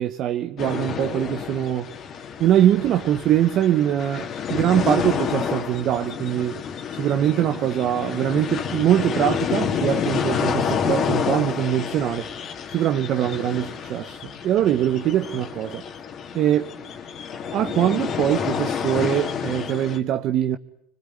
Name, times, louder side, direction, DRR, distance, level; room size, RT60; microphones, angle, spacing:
voice 1, 0.0-1.9 2.4-6.6 6.9-12.3 12.7-15.8 16.3-16.8 17.5-20.6, right 11 dB, 50° right, 1.2 m, -22 dB
sound 1, 0.6-20.0, left 7 dB, 45° left, 3.0 m, -29 dB
26.5 x 21.5 x 9.8 m
supercardioid pair, 105°, 0 cm